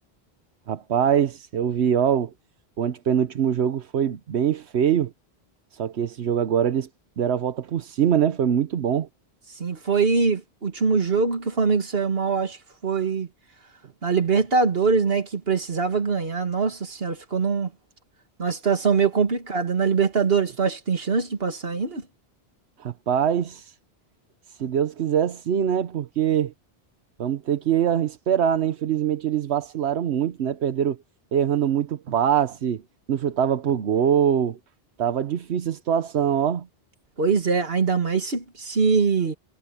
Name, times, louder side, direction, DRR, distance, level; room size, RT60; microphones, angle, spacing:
voice 1, 0.7-2.3 2.8-5.1 5.7-6.9 7.2-9.1 22.8-23.7 24.6-26.5 27.2-31.0 31.3-32.8 33.1-34.6 35.0-36.7, right 9 dB, 85° right, 1.1 m, -23 dB
voice 2, 9.6-12.6 12.8-13.3 14.0-17.7 18.4-22.1 37.2-39.3, right 5 dB, 65° right, 2.2 m, -23 dB
omnidirectional pair, 1.1 m